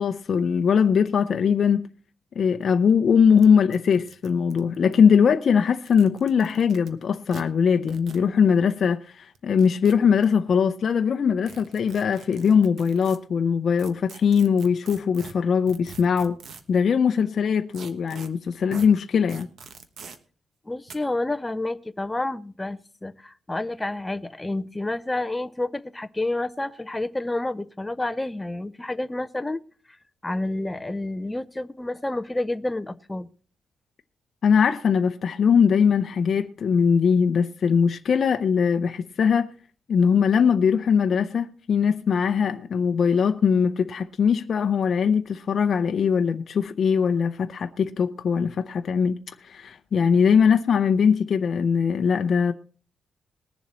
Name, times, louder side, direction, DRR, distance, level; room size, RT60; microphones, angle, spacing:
voice 1, 0.0-1.9 2.3-16.4 16.7-19.5 34.4-39.5 39.9-52.5, left 6 dB, 50° left, 0.6 m, -21 dB
sound 1, 2.6-2.7 2.9-3.0 3.4-3.5 3.7-5.2 5.8-6.9 7.3-7.4 7.9-8.2 9.3-10.3 11.4-13.2 13.8-16.8 17.7-18.3 18.7-18.9 19.3-20.2 20.9-21.0, right 5 dB, 60° right, 1.2 m, -43 dB
voice 2, 20.7-29.6 30.2-33.3, left 2 dB, 10° left, 0.5 m, -29 dB
20.0 x 7.2 x 4.2 m
wide cardioid pair, 145°, 0 cm